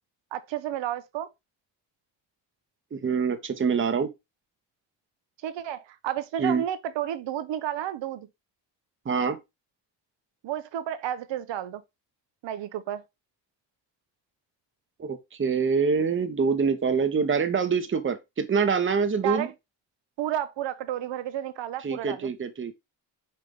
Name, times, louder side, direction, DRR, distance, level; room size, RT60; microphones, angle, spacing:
voice 1, 0.3-1.3 5.4-8.3 10.4-11.8 12.4-13.0 19.2-19.5 20.2-22.3, right 11 dB, 60° right, 0.8 m, -31 dB
voice 2, 2.9-4.1 6.4-6.6 9.0-9.4 15.0-19.5 21.8-22.7, right 5 dB, 25° right, 0.9 m, -25 dB
5.3 x 2.7 x 3.6 m
supercardioid pair, 60°, 50 cm